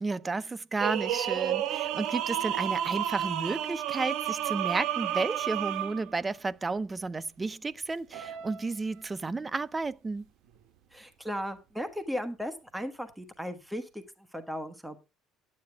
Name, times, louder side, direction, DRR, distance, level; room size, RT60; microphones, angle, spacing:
voice 1, 0.0-10.3, right 3 dB, 20° right, 0.5 m, -32 dB
sound 1, 0.8-6.1 8.1-8.6, right 11 dB, 70° right, 0.9 m, -31 dB
voice 2, 10.9-15.0, equal, ahead, 1.2 m, -36 dB
11.5 x 9.6 x 3.4 m
cardioid pair, 135°, 0 cm